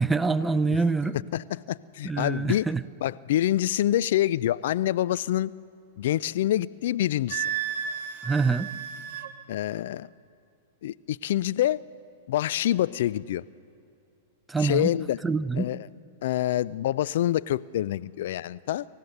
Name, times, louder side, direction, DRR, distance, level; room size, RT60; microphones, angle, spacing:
voice 1, 0.0-1.2 2.0-2.8 8.2-8.7 14.5-14.9 15.2-15.7, right 4 dB, 10° right, 0.6 m, -25 dB
voice 2, 1.3-2.7 3.0-5.5 6.0-7.5 9.5-10.1 10.8-11.8 12.3-13.4 14.6-15.2 15.5-15.9 16.2-18.9, left 13 dB, 65° left, 0.4 m, -26 dB
Wind instrument woodwind instrument, 7.3-9.3, right 9 dB, 55° right, 1.7 m, -32 dB
26.5 x 15.0 x 6.6 m
hypercardioid pair, 110°, 0 cm